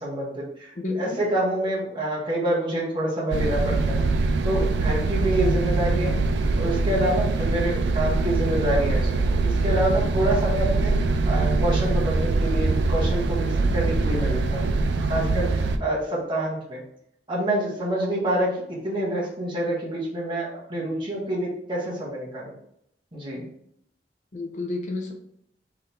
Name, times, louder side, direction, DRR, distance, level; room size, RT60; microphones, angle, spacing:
voice 1, 0.0-6.2 6.6-10.9 11.2-14.7 15.0-16.8 17.3-22.5 23.1-23.4, right 1 dB, 30° right, -4 dB, 1.4 m, -27 dB
voice 2, 0.8-1.2 24.3-25.1, left 2 dB, 45° left, 2 dB, 0.6 m, -30 dB
sound 1, 3.3-15.8, right 3 dB, 75° right, 0.4 m, -23 dB
3.8 x 3.2 x 4.4 m, 0.73 s
head